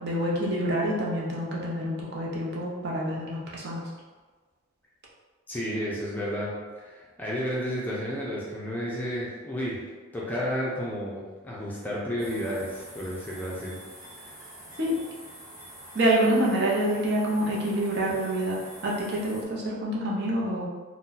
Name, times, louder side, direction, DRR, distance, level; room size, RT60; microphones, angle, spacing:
voice 1, 0.0-3.9 14.8-15.0 15.9-20.7, right 1 dB, 50° right, -4 dB, 0.7 m, -27 dB
voice 2, 5.5-9.8 10.1-13.8 14.2-14.4, equal, 10° left, -6 dB, 0.5 m, -32 dB
sound 1, 12.2-19.4, right 1 dB, 15° right, 0.8 m, -46 dB
2.6 x 2.2 x 3.9 m, 1.4 s
head